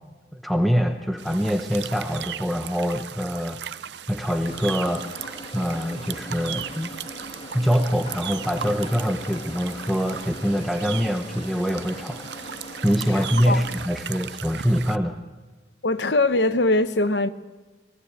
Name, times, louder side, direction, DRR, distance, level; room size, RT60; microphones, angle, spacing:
voice 1, 0.3-3.8 4.1-5.1 5.5-6.9 7.5-12.2 12.8-15.2, equal, ahead, 1.0 m, -24 dB
sound 1, 1.2-15.0, right 9 dB, 70° right, 0.6 m, -37 dB
sound 2, 4.5-13.8, left 1 dB, 30° left, 2.2 m, -40 dB
voice 2, 13.1-13.6 15.8-17.3, left 2 dB, 75° left, 1.1 m, -22 dB
26.0 x 18.5 x 8.1 m
head